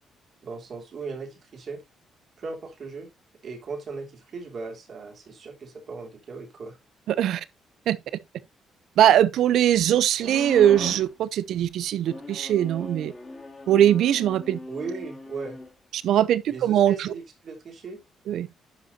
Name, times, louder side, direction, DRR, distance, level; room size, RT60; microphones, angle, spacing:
voice 1, 0.4-1.8 2.4-3.1 3.4-6.8 14.7-15.6 16.5-18.0, right 4 dB, 55° right, 3.3 m, -37 dB
voice 2, 7.1-7.4 7.9-8.0 9.0-13.1 13.7-14.6 15.9-17.1 18.3-18.5, right 11 dB, 75° right, 0.6 m, -21 dB
sound 1, 10.2-11.1 12.0-15.7, left 2 dB, 25° left, 2.5 m, -38 dB
11.5 x 5.1 x 2.7 m
cardioid pair, 90°, 0 cm